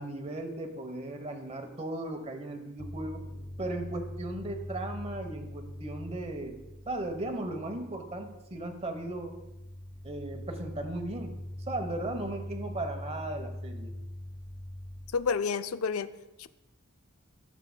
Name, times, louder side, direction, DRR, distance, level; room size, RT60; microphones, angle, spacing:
voice 1, 0.0-3.2 3.6-6.6 6.9-9.4 10.0-11.3 11.7-14.0, right 2 dB, 30° right, 6 dB, 0.9 m, -36 dB
sound 1, 2.8-15.2, left 1 dB, 30° left, 0.7 m, -42 dB
voice 2, 15.1-16.1 16.4-16.5, left 5 dB, 90° left, 12 dB, 0.4 m, -29 dB
15.0 x 7.3 x 2.2 m, 0.98 s
head